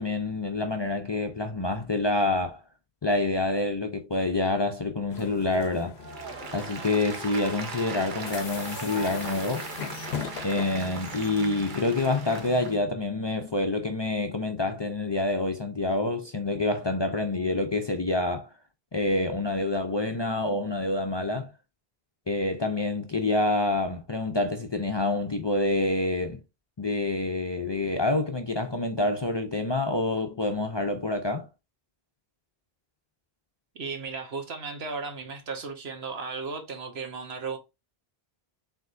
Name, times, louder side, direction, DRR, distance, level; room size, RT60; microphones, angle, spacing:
voice 1, 0.0-2.6 3.0-6.0 6.5-9.7 10.4-18.5 18.9-21.5 22.3-26.4 26.8-31.5, left 2 dB, 35° left, 0.4 m, -27 dB
sound 1, 5.1-12.8, left 7 dB, 90° left, 0.9 m, -40 dB
Applause, 6.0-12.7, right 4 dB, 55° right, 1.0 m, -38 dB
voice 2, 33.7-37.6, right 4 dB, 80° right, 1.3 m, -35 dB
4.6 x 3.5 x 2.6 m
omnidirectional pair, 1.0 m